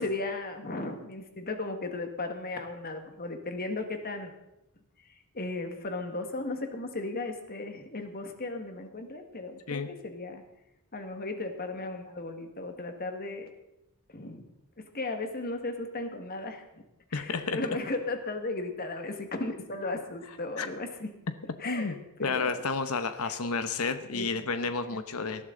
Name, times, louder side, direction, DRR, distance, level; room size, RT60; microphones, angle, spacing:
voice 1, 0.0-4.3 5.3-10.4 10.9-13.5 14.1-14.4 14.8-16.6 17.1-21.1 21.6-22.6 23.2-23.4 24.1-24.3 24.9-25.0, left 2 dB, 45° left, 6 dB, 1.7 m, -36 dB
voice 2, 17.1-17.6 20.6-20.7 21.6-25.5, left 4 dB, 70° left, 9 dB, 1.0 m, -31 dB
19.5 x 12.5 x 3.9 m, 0.90 s
head